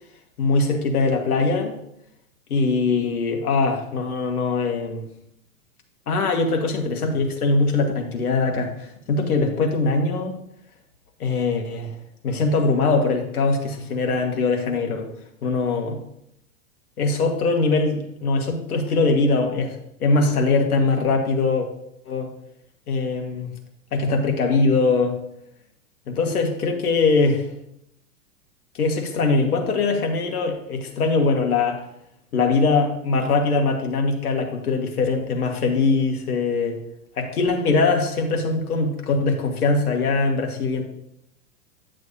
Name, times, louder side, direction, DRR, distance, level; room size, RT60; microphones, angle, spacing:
voice 1, 0.4-1.8 2.5-5.1 6.1-10.4 11.2-11.9 12.2-15.1 15.4-16.0 17.0-21.7 22.1-22.3 22.9-23.5 23.9-25.2 26.1-27.5 28.7-31.8 32.3-36.8 37.2-40.8, left 3 dB, 80° left, 3 dB, 1.8 m, -22 dB
10.0 x 6.3 x 2.8 m, 0.78 s
hypercardioid pair, 110°, 44 cm